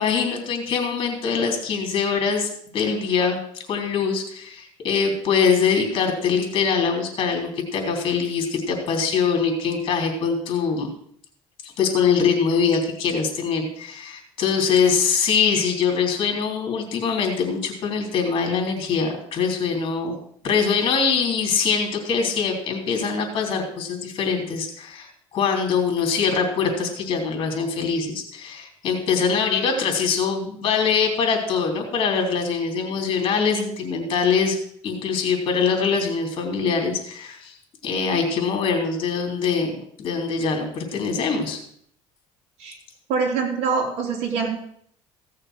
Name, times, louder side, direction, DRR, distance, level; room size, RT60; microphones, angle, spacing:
voice 1, 0.0-3.4 3.7-10.9 11.6-20.2 20.4-34.6 34.8-37.6 37.8-39.7 40.0-41.6, left 5 dB, 45° left, 2 dB, 3.4 m, -23 dB
voice 2, 43.1-44.5, right 5 dB, 70° right, 0 dB, 3.6 m, -24 dB
15.5 x 6.6 x 6.3 m, 0.66 s
cardioid pair, 135°, 12 cm